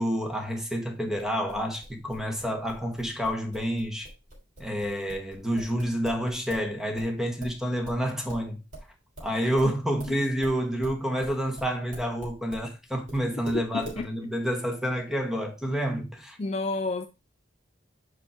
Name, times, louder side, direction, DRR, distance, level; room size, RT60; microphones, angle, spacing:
voice 1, 0.0-4.1 4.6-8.6 9.2-16.4, equal, ahead, 1.3 m, -29 dB
sound 1, 1.1-6.7 7.0-12.7 13.1-14.0, right 1 dB, 40° right, 3.3 m, -44 dB
voice 2, 13.5-14.1 16.4-17.1, left 3 dB, 35° left, 0.4 m, -30 dB
5.2 x 4.9 x 4.5 m
head